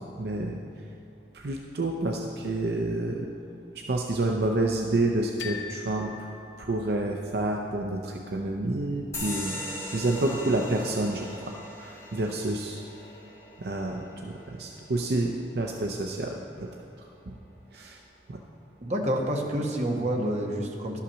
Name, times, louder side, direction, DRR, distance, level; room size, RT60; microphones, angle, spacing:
voice 1, 0.2-0.6 1.3-3.3 3.8-6.3 6.6-9.6 9.9-12.8 13.6-16.7 17.3-17.4 17.7-18.0 18.3-18.4, right 2 dB, 60° right, 1 dB, 0.6 m, -29 dB
sound 1, 5.4-7.3, left 7 dB, 85° left, 0.8 m, -41 dB
sound 2, 9.1-16.2, left 1 dB, 15° left, 1.4 m, -40 dB
voice 2, 18.8-21.0, right 1 dB, 40° right, 0 dB, 1.1 m, -28 dB
11.5 x 5.7 x 6.2 m, 2.5 s
head